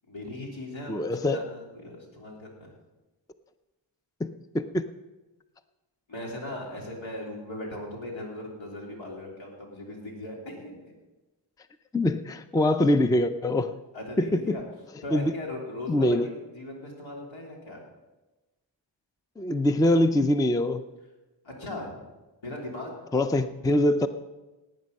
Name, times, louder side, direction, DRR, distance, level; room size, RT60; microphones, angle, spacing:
voice 1, 0.1-2.7 6.1-10.9 13.9-14.6 15.0-17.8 21.4-22.0 22.4-23.0, left 1 dB, 90° left, -1 dB, 3.5 m, -38 dB
voice 2, 0.9-1.4 4.2-4.8 11.9-13.7 14.2-14.6 15.1-15.3 15.9-16.3 19.4-20.8 23.1-24.1, left 1 dB, 10° left, 10 dB, 0.4 m, -24 dB
17.5 x 9.1 x 5.4 m, 1.1 s
wide cardioid pair, 160°, 45 cm